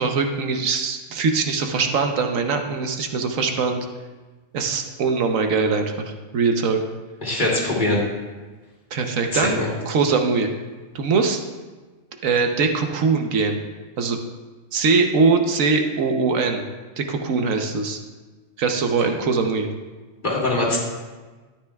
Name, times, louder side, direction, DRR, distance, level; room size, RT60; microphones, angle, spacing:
voice 1, 0.0-3.9 4.5-5.9 6.3-6.8 8.9-9.6 9.9-10.5 10.9-11.4 12.2-13.6 14.0-14.2 14.7-16.6 17.0-18.0 18.6-19.7, right 4 dB, 80° right, 5 dB, 1.2 m, -21 dB
voice 2, 7.2-8.0 9.3-9.7 20.2-20.8, left 2 dB, 35° left, -4 dB, 2.4 m, -22 dB
12.5 x 10.0 x 2.3 m, 1.3 s
omnidirectional pair, 1.4 m